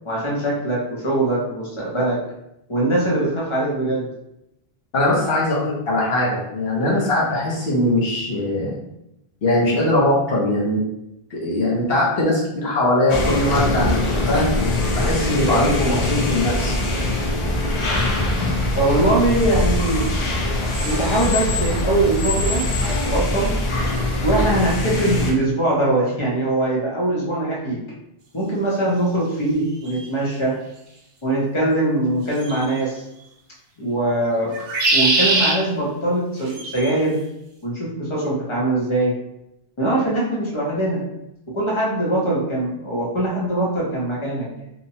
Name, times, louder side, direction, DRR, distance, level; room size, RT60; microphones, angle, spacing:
voice 1, 0.0-2.2 2.7-4.1 5.3-5.4 18.7-20.1 20.8-22.6 23.0-23.6 24.2-27.8 28.3-30.6 31.2-33.0 33.8-34.5 34.9-37.2 37.6-39.1 39.8-41.0 41.5-44.5, right 1 dB, 30° left, -5 dB, 0.7 m, -22 dB
voice 2, 4.9-8.8 9.4-10.8 11.3-14.5 15.0-16.8, left 1 dB, 70° left, -5 dB, 1.1 m, -21 dB
sound 1, 13.1-25.3, left 1 dB, 50° left, 0.3 m, -22 dB
sound 2, 29.9-30.0 32.4-32.8 34.5-35.6 36.5-36.9, right 2 dB, 70° right, 0.8 m, -20 dB
2.8 x 2.2 x 2.7 m, 0.84 s
omnidirectional pair, 1.1 m